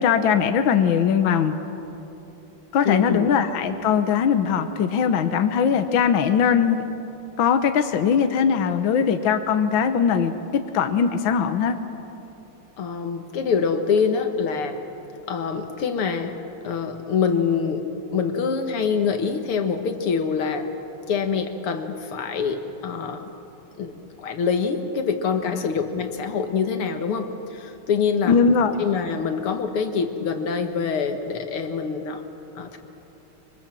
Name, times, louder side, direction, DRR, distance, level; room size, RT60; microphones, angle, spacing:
voice 1, 0.0-1.5 2.7-6.9 7.4-10.3 10.7-11.8 25.5-25.6 28.3-28.8, left 7 dB, 70° left, 8 dB, 1.7 m, -20 dB
voice 2, 2.9-3.3 12.8-14.8 15.3-16.4 16.6-17.9 18.1-20.7 21.1-23.3 23.8-23.9 24.2-28.4 28.8-32.2 32.6-32.8, left 6 dB, 90° left, 6 dB, 2.5 m, -25 dB
25.5 x 24.5 x 7.6 m, 2.9 s
omnidirectional pair, 2.3 m